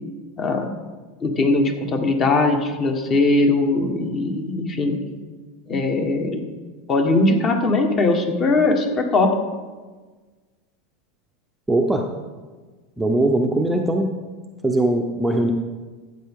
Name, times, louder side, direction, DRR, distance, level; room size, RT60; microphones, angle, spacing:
voice 1, 0.4-0.7 1.2-5.0 5.7-6.4 6.9-9.3, left 2 dB, 30° left, 4 dB, 1.3 m, -20 dB
voice 2, 11.7-12.0 13.0-14.1 14.6-15.5, right 1 dB, 5° right, 2 dB, 0.7 m, -20 dB
13.0 x 8.1 x 3.6 m, 1.4 s
supercardioid pair, 145°, 0 cm